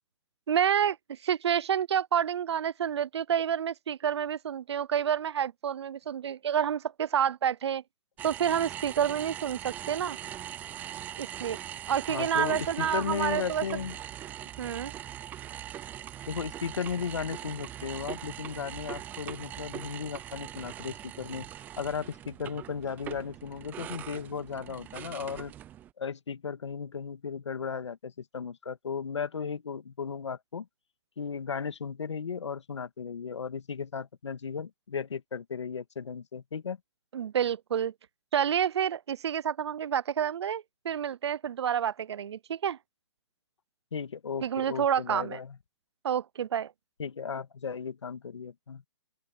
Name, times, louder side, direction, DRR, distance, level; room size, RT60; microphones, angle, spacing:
voice 1, 0.5-7.8 8.2-10.2 11.2-11.6 11.9-13.6 14.6-14.9 37.1-37.9 38.3-42.8 44.4-45.4 46.0-46.7, right 9 dB, 70° right, 0.6 m, -29 dB
sound 1, 8.2-25.9, right 11 dB, 10° right, 0.5 m, -41 dB
voice 2, 12.1-14.0 16.3-21.5 21.8-25.5 26.0-30.7 31.2-36.8 43.9-45.6 47.0-48.8, left 6 dB, 90° left, 1.8 m, -35 dB
open air
hypercardioid pair, 155°, 15 cm